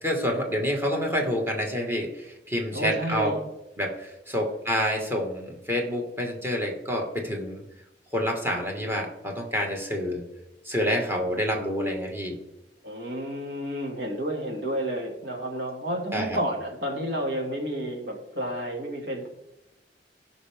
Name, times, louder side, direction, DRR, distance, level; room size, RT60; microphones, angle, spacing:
voice 1, 0.0-3.3 3.8-7.6 8.1-10.2 10.7-12.4 16.1-16.4, equal, 15° right, 1 dB, 2.0 m, -28 dB
voice 2, 2.7-3.4 12.8-19.3, right 1 dB, 85° right, 0 dB, 2.6 m, -31 dB
16.5 x 5.9 x 3.7 m, 0.91 s
head